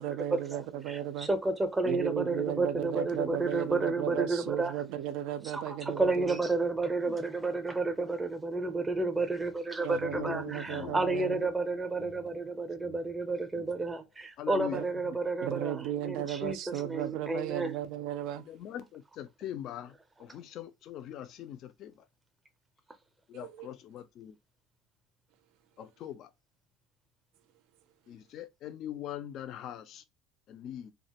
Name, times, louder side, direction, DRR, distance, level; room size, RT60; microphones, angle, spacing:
voice 1, 0.0-1.3 1.8-6.4 9.8-11.4 14.7-15.2 15.4-18.5 23.3-23.7, right 11 dB, 70° right, 0.4 m, -35 dB
voice 2, 0.9-4.7 5.4-17.8, right 3 dB, 10° right, 0.5 m, -31 dB
sound 1, 9.4-14.1, left 5 dB, 70° left, 0.7 m, -51 dB
voice 3, 10.1-11.2 14.4-14.8 18.4-22.0 23.3-24.4 25.8-26.3 28.1-30.0 30.5-30.9, left 11 dB, 50° left, 0.4 m, -42 dB
2.4 x 2.2 x 2.8 m
cardioid pair, 135°, 0 cm